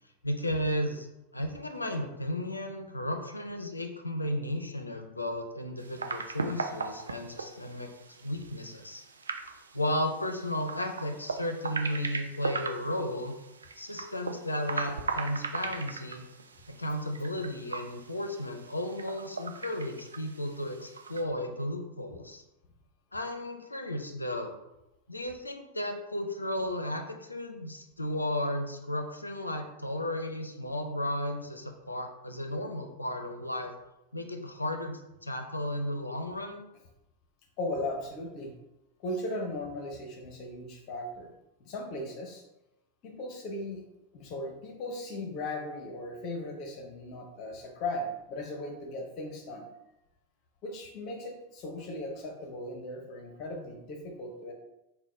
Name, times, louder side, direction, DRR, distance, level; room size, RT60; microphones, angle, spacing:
voice 1, 0.2-1.1 1.3-7.9 8.2-9.0 9.7-13.3 13.8-16.2 16.7-22.4 23.1-24.5 25.1-33.7 34.1-36.6, left 1 dB, 85° left, 5 dB, 0.5 m, -34 dB
sound 1, 5.8-21.2, right 4 dB, 75° right, 0.4 m, -39 dB
voice 2, 37.6-38.5 39.0-41.3 41.6-42.4 43.0-43.8 44.1-49.7 50.6-54.5, left 1 dB, 40° left, 2 dB, 0.8 m, -37 dB
3.9 x 2.2 x 4.3 m, 0.93 s
figure-of-eight pair, 90°, 0 cm